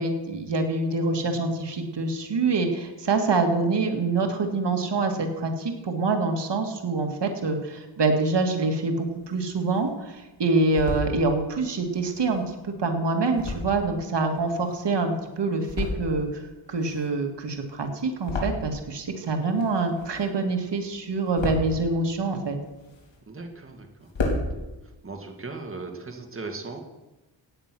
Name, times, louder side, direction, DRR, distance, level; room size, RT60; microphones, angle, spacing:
voice 1, 0.0-22.6, right 3 dB, 60° right, 4 dB, 2.2 m, -26 dB
sound 1, 9.0-9.9 10.4-11.1 11.8-15.1 15.5-16.3 16.6-19.0 19.3-20.5 20.9-21.8 22.4-23.4 23.7-23.8 24.0-24.5, left 2 dB, 70° left, 4.0 m, -33 dB
voice 2, 23.3-24.1 25.0-26.8, right 3 dB, 25° right, 3 dB, 2.0 m, -37 dB
16.0 x 9.7 x 6.2 m, 1.1 s
wide cardioid pair, 95°, 46 cm